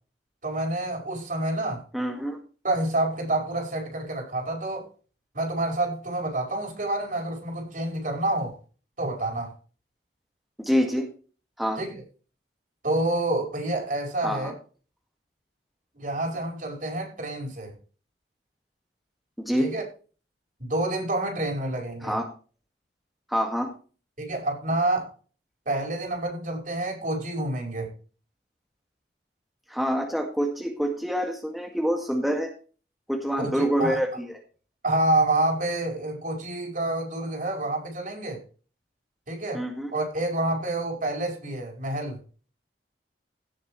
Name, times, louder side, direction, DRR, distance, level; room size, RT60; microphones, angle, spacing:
voice 1, 0.4-1.8 2.6-4.8 5.3-8.5 9.0-9.5 11.8-11.9 12.8-14.5 16.0-17.7 19.6-19.8 20.6-22.2 24.2-25.1 25.7-27.9 33.4-34.0 34.8-38.4 39.3-39.6 39.9-42.2, right 2 dB, 50° right, 2 dB, 5.2 m, -28 dB
voice 2, 1.9-2.4 10.6-11.1 11.6-11.8 14.2-14.5 19.4-19.7 22.0-22.2 23.3-23.7 29.7-32.5 33.1-34.3 39.5-39.9, equal, ahead, 1 dB, 2.0 m, -26 dB
17.0 x 7.1 x 3.2 m, 0.37 s
head